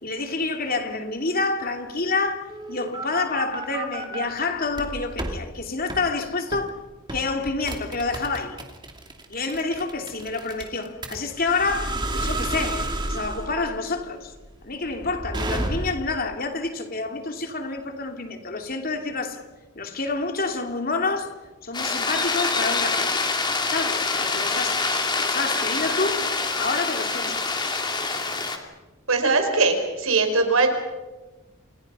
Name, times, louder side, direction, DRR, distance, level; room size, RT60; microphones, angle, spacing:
voice 1, 0.0-6.7 7.1-8.6 9.3-14.3 14.6-19.4 19.7-21.3 21.6-23.1 23.7-24.8 25.2-26.2 26.6-27.4, left 3 dB, 45° left, 3.0 m, -28 dB
sound 1, 2.5-4.3 4.7-5.4 5.9-6.1 6.5-6.7 7.1-16.1, right 2 dB, 20° right, 2.7 m, -31 dB
sound 2, 21.7-28.6, left 3 dB, 20° left, 2.8 m, -25 dB
voice 2, 29.1-30.7, right 3 dB, 85° right, 4.8 m, -20 dB
29.0 x 28.0 x 5.7 m
head